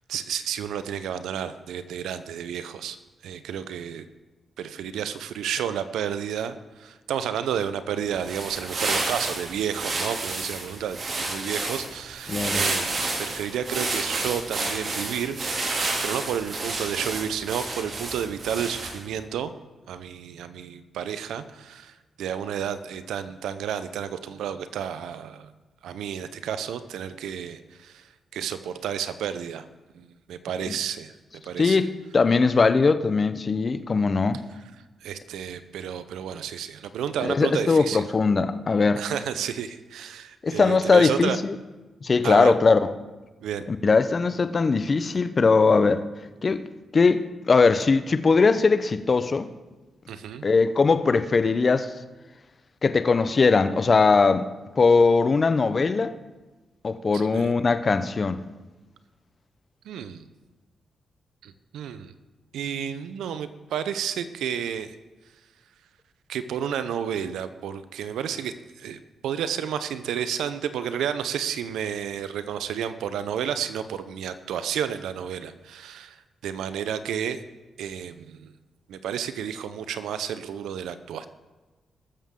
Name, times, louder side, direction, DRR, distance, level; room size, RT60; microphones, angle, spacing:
voice 1, 0.1-3.0 3.2-4.0 4.6-15.8 16.0-19.5 19.9-25.5 25.8-28.1 28.3-29.6 29.9-31.1 31.4-31.8 35.0-38.1 39.0-41.4 42.2-42.6 43.4-43.7 50.1-50.5 57.1-57.5 59.8-60.3 61.4-62.1 62.5-65.0 66.3-76.2 76.4-77.4 77.8-78.5 78.9-81.3, right 8 dB, 85° right, 0.7 m, -31 dB
sound 1, 8.1-19.1, right 2 dB, 55° right, 2.7 m, -30 dB
voice 2, 12.3-12.6 31.6-34.4 37.2-39.0 40.4-41.5 42.0-42.9 43.7-46.0 46.4-46.6 46.9-49.5 50.4-51.9 52.8-54.5 54.8-56.1 56.8-58.4, left 4 dB, 45° left, 0.8 m, -20 dB
20.0 x 7.3 x 3.8 m
supercardioid pair, 55°, 0 cm